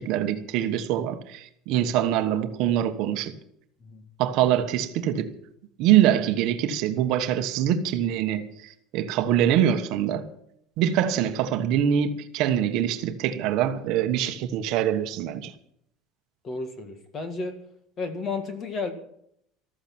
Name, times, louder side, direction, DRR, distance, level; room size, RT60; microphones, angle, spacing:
voice 1, 0.0-3.3 4.2-5.3 5.8-10.2 10.8-15.5, right 10 dB, 50° right, 1.3 m, -24 dB
voice 2, 16.4-17.6 18.0-18.9, left 3 dB, 25° left, 1.9 m, -32 dB
14.0 x 14.0 x 6.1 m
cardioid pair, 180°, 0 cm